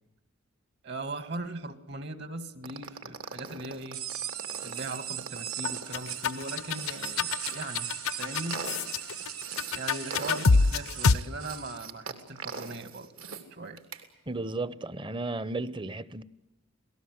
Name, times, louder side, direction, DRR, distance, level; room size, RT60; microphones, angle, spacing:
voice 1, 0.8-4.1 4.6-8.8 9.7-13.8, right 2 dB, 50° right, 2.1 m, -39 dB
sound 1, 2.6-7.6 8.0-9.8 10.1-13.4 13.8-14.0, right 5 dB, 75° right, 3.2 m, -42 dB
sound 2, 3.9-11.8, right 10 dB, 90° right, 1.3 m, -39 dB
sound 3, 5.7-11.1, left 4 dB, 85° left, 0.8 m, -26 dB
voice 2, 14.3-16.2, right 2 dB, 25° right, 0.8 m, -34 dB
28.0 x 19.0 x 8.1 m
head